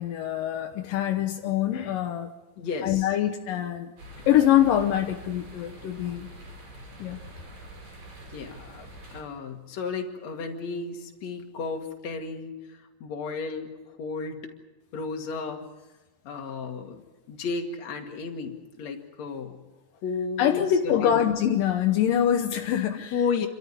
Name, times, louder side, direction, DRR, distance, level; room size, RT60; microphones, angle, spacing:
voice 1, 0.0-2.3 2.8-3.9 4.3-6.3 7.0-7.2 20.4-23.5, left 10 dB, 75° left, 4 dB, 2.0 m, -24 dB
voice 2, 2.6-3.1 8.3-14.5 14.9-15.7 16.2-17.0 17.3-19.6 20.0-21.2 23.1-23.5, left 4 dB, 45° left, 2 dB, 2.7 m, -33 dB
sound 1, 4.0-9.2, right 1 dB, 50° right, 7.2 m, -45 dB
28.0 x 13.5 x 9.6 m, 1.1 s
omnidirectional pair, 5.3 m